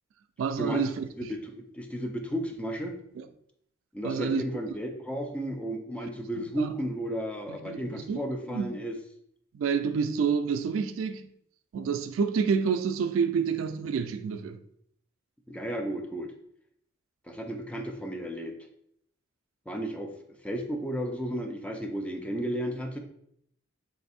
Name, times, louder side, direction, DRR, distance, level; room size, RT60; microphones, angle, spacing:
voice 1, 0.4-1.1 3.2-3.3 4.0-4.4 6.4-6.7 7.5-8.2 8.5-8.8 9.5-11.3 11.7-14.6, right 6 dB, 85° right, 0.3 m, -28 dB
voice 2, 1.2-3.0 3.9-9.0 15.5-16.3 17.3-18.5 19.7-20.1 20.4-23.0, equal, 5° left, 0.4 m, -33 dB
3.3 x 2.6 x 4.1 m
head